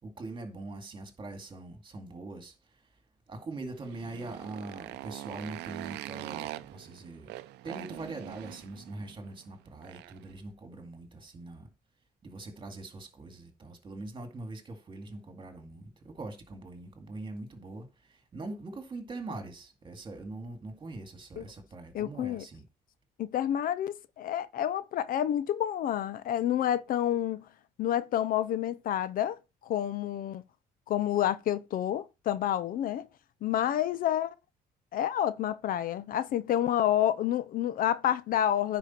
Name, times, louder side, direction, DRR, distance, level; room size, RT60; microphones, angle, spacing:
voice 1, 0.0-2.9 3.3-7.3 7.6-11.7 12.2-22.6, right 2 dB, 30° right, 2.2 m, -42 dB
Motorcycle, 3.7-10.3, right 16 dB, 85° right, 0.6 m, -43 dB
voice 2, 21.9-22.5 23.2-27.5 27.8-30.4 30.9-33.1 33.4-34.3 34.9-38.8, left 11 dB, 55° left, 0.5 m, -29 dB
10.0 x 5.0 x 4.4 m
cardioid pair, 110°, 17 cm